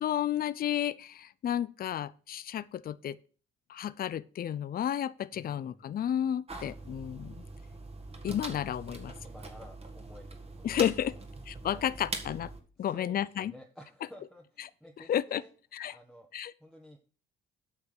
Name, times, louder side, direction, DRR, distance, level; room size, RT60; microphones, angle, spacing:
voice 1, 0.0-3.2 3.7-7.3 8.2-9.1 10.6-11.1 11.5-12.5 12.8-13.5 15.1-15.4 15.7-16.0 16.3-16.5, left 10 dB, 50° left, 0.5 m, -32 dB
voice 2, 5.3-5.8 8.5-8.9 9.2-11.2 11.7-11.9 12.8-15.5 15.9-16.3 16.6-17.0, equal, ahead, 1.4 m, -53 dB
sound 1, 6.5-12.6, right 3 dB, 30° right, 1.9 m, -43 dB
8.8 x 5.9 x 6.1 m
cardioid pair, 90°, 20 cm